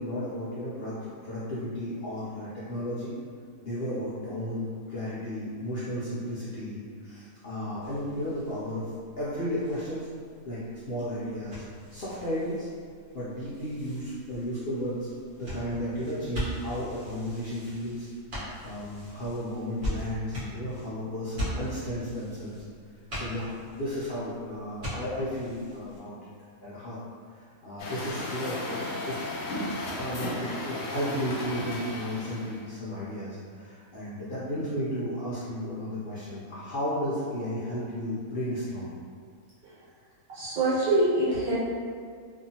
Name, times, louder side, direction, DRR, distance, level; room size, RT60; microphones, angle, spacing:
voice 1, 0.0-3.1 3.6-10.1 10.5-11.6 11.9-12.7 13.1-18.1 18.6-22.6 23.1-26.1 26.6-27.0 27.3-29.2 29.7-38.9, equal, 65° left, -10 dB, 0.6 m, -34 dB
sound 1, 7.8-26.0, equal, 45° right, 1.1 m, -41 dB
Truck, 27.8-32.6, left 1 dB, 90° left, 1.1 m, -35 dB
voice 2, 40.3-41.5, right 2 dB, 75° right, -11 dB, 1.5 m, -25 dB
2.7 x 2.4 x 2.7 m, 2.1 s
omnidirectional pair, 1.5 m